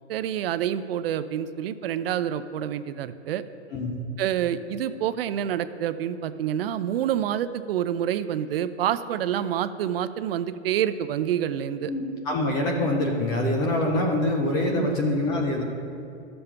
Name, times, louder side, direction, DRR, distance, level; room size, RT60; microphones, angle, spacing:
voice 1, 0.1-3.4 4.2-11.9 14.7-15.0, right 10 dB, 55° right, 13 dB, 0.5 m, -27 dB
voice 2, 11.9-15.6, left 1 dB, 10° left, 1 dB, 0.4 m, -25 dB
12.0 x 6.9 x 5.6 m, 2.6 s
hypercardioid pair, 150°, 35 cm